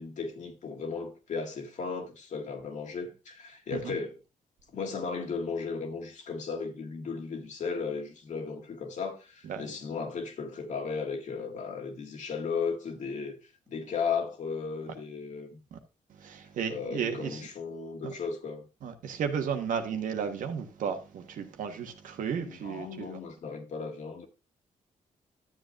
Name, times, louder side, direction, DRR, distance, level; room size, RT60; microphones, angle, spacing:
voice 1, 0.0-4.2 4.7-13.4 13.7-15.5 16.7-18.7 22.4-24.3, left 5 dB, 65° left, 1.9 m, -35 dB
voice 2, 16.2-17.4 18.8-23.1, right 7 dB, 80° right, 1.3 m, -33 dB
12.5 x 7.6 x 2.5 m
cardioid pair, 90°, 13 cm